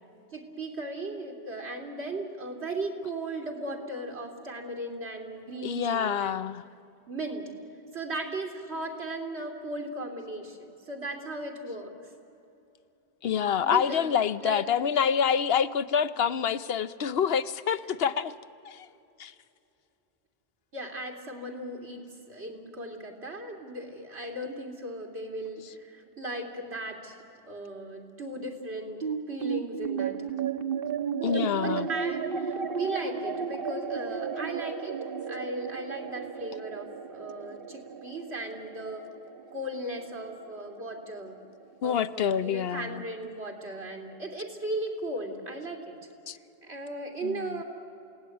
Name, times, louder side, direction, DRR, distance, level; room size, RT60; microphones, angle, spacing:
voice 1, 0.3-6.4 7.1-7.5 7.9-11.9 13.6-14.7 17.7-17.8 20.7-27.2 27.5-30.3 31.2-39.1 39.5-41.4 41.8-46.0 46.6-47.6, right 2 dB, 85° right, 2 dB, 3.2 m, -37 dB
voice 2, 5.6-6.6 13.2-18.3 18.6-18.9 19.2-19.3 31.2-31.9 41.8-43.0 46.3-46.4 47.2-47.6, left 7 dB, 70° left, 13 dB, 0.9 m, -27 dB
sound 1, 29.0-41.6, right 6 dB, 60° right, 1.2 m, -34 dB
28.0 x 17.5 x 9.3 m, 2.8 s
omnidirectional pair, 1.1 m